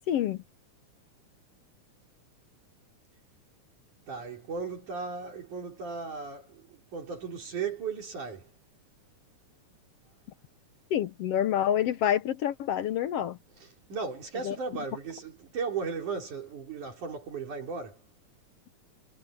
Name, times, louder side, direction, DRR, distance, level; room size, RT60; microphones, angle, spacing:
voice 1, 0.1-0.4 10.9-13.4 14.4-14.5, left 10 dB, 70° left, 1.5 m, -27 dB
voice 2, 4.1-8.5 13.6-18.0, right 5 dB, 75° right, 5.7 m, -36 dB
omnidirectional pair, 3.6 m